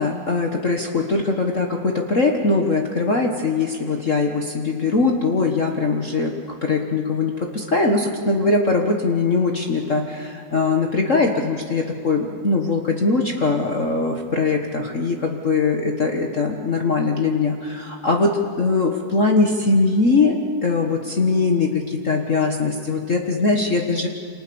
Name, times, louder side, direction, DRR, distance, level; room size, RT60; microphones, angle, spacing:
voice 1, 0.0-6.4 6.6-24.1, left 3 dB, 40° left, 2 dB, 1.7 m, -21 dB
28.5 x 27.0 x 7.1 m, 2.3 s
omnidirectional pair, 2.4 m